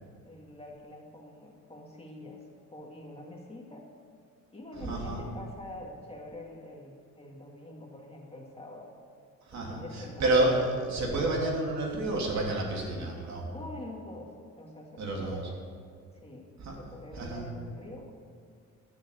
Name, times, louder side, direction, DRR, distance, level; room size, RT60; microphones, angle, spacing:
voice 1, 0.2-2.4 2.7-3.9 4.5-8.9 9.5-10.4 12.8-13.2 13.5-15.6 16.2-16.5 16.8-18.1, left 1 dB, 20° left, -1 dB, 2.3 m, -45 dB
voice 2, 4.8-5.2 9.5-13.4 15.0-15.4 16.6-16.8 17.1-17.5, right 2 dB, 65° right, -1 dB, 3.1 m, -29 dB
11.5 x 7.6 x 7.3 m, 2.1 s
cardioid pair, 90°, 30 cm